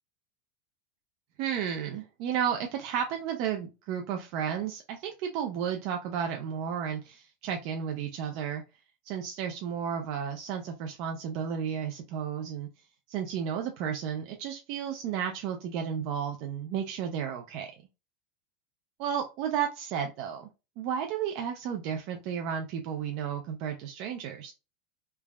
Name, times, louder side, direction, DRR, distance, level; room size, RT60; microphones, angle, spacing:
voice 1, 1.4-8.6 9.0-12.7 13.1-17.7 19.0-20.5 20.8-24.5, right 8 dB, 50° right, 3 dB, 0.4 m, -33 dB
3.2 x 2.0 x 2.2 m, 0.28 s
supercardioid pair, 150°, 0 cm